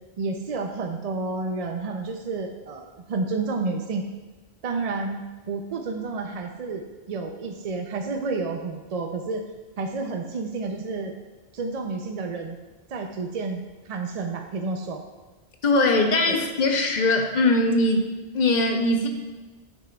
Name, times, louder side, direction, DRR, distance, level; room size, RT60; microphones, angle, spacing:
voice 1, 0.2-4.0 4.6-9.4 9.8-11.1 11.5-12.6 12.9-15.0 16.3-16.4, right 3 dB, 50° right, 4 dB, 0.4 m, -30 dB
voice 2, 15.6-19.1, left 2 dB, 50° left, 4 dB, 0.8 m, -21 dB
9.8 x 6.1 x 2.3 m, 1.2 s
omnidirectional pair, 1.1 m